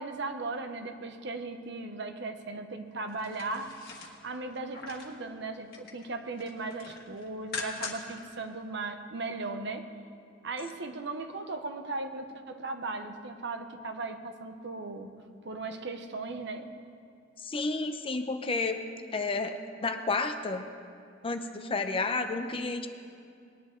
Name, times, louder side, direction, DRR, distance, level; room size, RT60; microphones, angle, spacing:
voice 1, 0.0-9.9 10.4-15.2 15.4-16.7, right 3 dB, 65° right, 7 dB, 0.9 m, -37 dB
sound 1, 3.1-5.2 5.5-6.1 6.4-8.2 8.6-8.7, left 4 dB, 55° left, 1.6 m, -42 dB
voice 2, 17.4-18.8 19.1-20.6 21.2-22.9, left 3 dB, 30° left, 7 dB, 0.7 m, -31 dB
20.0 x 10.0 x 3.8 m, 2.3 s
head